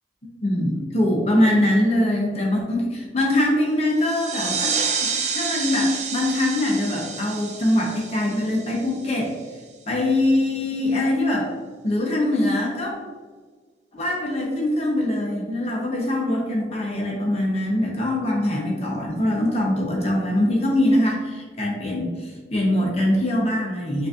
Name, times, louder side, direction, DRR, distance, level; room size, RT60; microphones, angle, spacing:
voice 1, 0.4-9.3 9.9-11.5 11.8-12.9 13.9-24.1, left 1 dB, 35° left, -1 dB, 0.8 m, -23 dB
sound 1, 4.0-9.3, right 5 dB, 40° right, 0.4 m, -29 dB
5.7 x 2.7 x 2.5 m, 1.5 s
head